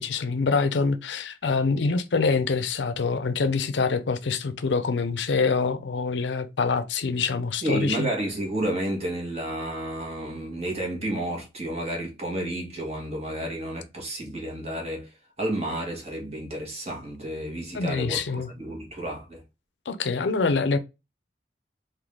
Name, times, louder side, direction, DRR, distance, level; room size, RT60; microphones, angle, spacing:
voice 1, 0.0-8.1 17.7-18.5 19.9-20.8, left 4 dB, 90° left, 0.6 m, -25 dB
voice 2, 7.6-15.1 15.4-19.4, right 1 dB, 35° right, 1.5 m, -31 dB
3.8 x 2.6 x 3.4 m
head